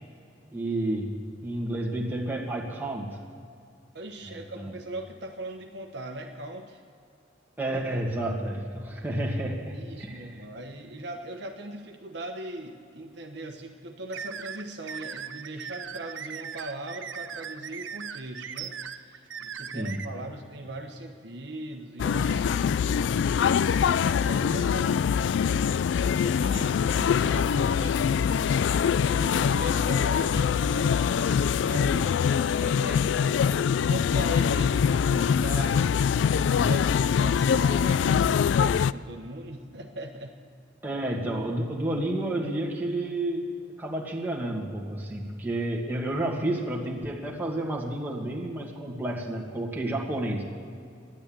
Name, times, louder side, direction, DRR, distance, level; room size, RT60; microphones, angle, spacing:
voice 1, 0.5-3.2 4.2-4.7 7.6-10.3 19.7-20.0 40.8-50.4, right 1 dB, 10° right, -3 dB, 1.9 m, -31 dB
voice 2, 3.9-6.8 9.7-22.6 23.3-25.7 26.2-28.0 28.4-35.8 36.2-40.4, right 1 dB, 60° right, 3 dB, 1.2 m, -39 dB
sound 1, 14.1-20.0, right 7 dB, 80° right, 0.7 m, -38 dB
sound 2, 22.0-38.9, left 7 dB, 70° left, 0.3 m, -24 dB
12.5 x 11.0 x 8.8 m, 2.4 s
head